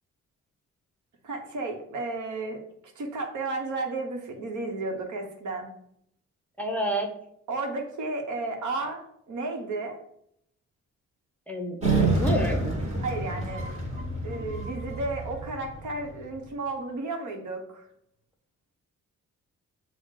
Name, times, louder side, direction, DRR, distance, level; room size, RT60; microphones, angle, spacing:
voice 1, 1.2-2.6 3.0-5.7 7.5-10.0 13.0-13.8 14.2-17.9, right 2 dB, 75° right, 3 dB, 0.9 m, -33 dB
voice 2, 6.6-7.1 11.5-12.9, equal, 5° left, 1 dB, 0.6 m, -30 dB
sound 1, 11.8-16.4, right 2 dB, 20° right, 1.3 m, -28 dB
6.3 x 2.1 x 3.6 m, 0.72 s
cardioid pair, 100°, 30 cm